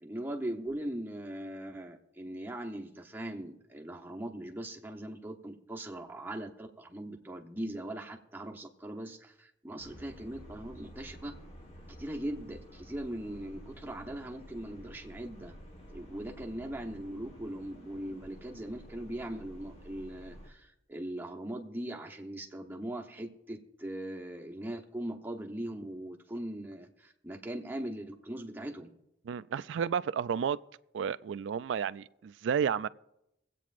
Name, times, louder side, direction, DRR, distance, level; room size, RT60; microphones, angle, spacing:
voice 1, 0.0-11.3 12.0-15.5 15.9-28.9, right 1 dB, 10° right, 0.9 m, -40 dB
sound 1, 9.8-20.5, equal, 35° left, 1.3 m, -51 dB
voice 2, 29.3-30.6 30.9-32.9, right 7 dB, 80° right, 0.3 m, -31 dB
24.5 x 8.3 x 2.5 m
head